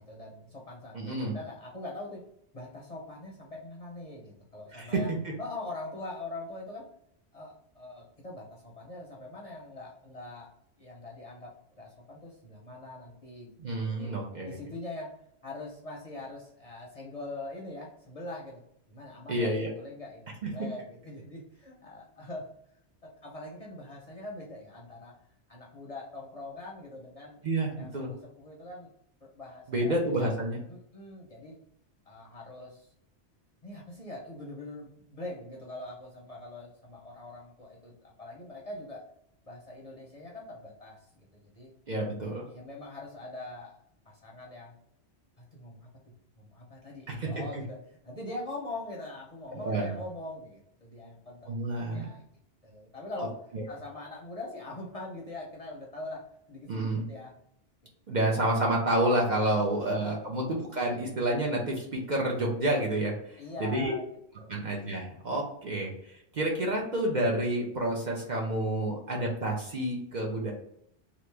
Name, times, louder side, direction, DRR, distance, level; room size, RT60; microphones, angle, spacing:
voice 1, 0.0-2.2 2.5-5.1 5.4-6.9 7.3-10.5 10.8-13.5 13.8-14.1 14.5-15.1 15.4-18.6 18.9-22.5 23.0-25.1 25.5-27.4 27.8-28.9 29.2-30.3 30.7-31.6 32.1-32.9 33.6-39.0 39.5-41.0 41.3-41.7 42.5-43.8 44.1-44.7 45.4-45.9 46.4-47.8 48.0-52.2 52.6-53.4 53.7-57.3 59.5-60.3 63.4-64.1 64.4-64.6, left 2 dB, 40° left, -3 dB, 0.7 m, -43 dB
voice 2, 0.9-1.3 4.7-5.3 13.6-14.6 19.3-19.7 20.4-20.5 27.4-28.1 29.7-30.6 41.9-42.5 47.1-47.6 49.5-49.9 51.5-52.1 53.5-53.6 56.7-57.1 58.1-63.9 64.5-70.5, right 1 dB, 45° right, -2 dB, 0.7 m, -29 dB
3.0 x 2.5 x 3.3 m, 0.72 s
omnidirectional pair, 1.1 m